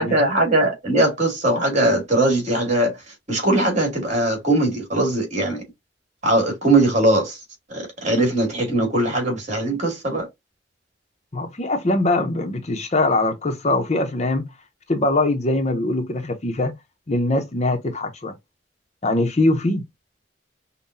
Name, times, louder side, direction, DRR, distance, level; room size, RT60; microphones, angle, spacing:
voice 1, 0.0-3.0 3.3-5.6 6.2-7.4 7.7-10.3, right 1 dB, 40° right, 2.1 m, -20 dB
voice 2, 11.3-14.5 14.9-16.7 17.1-18.3 19.0-19.9, left 2 dB, 40° left, 0.7 m, -22 dB
5.5 x 2.2 x 2.6 m
head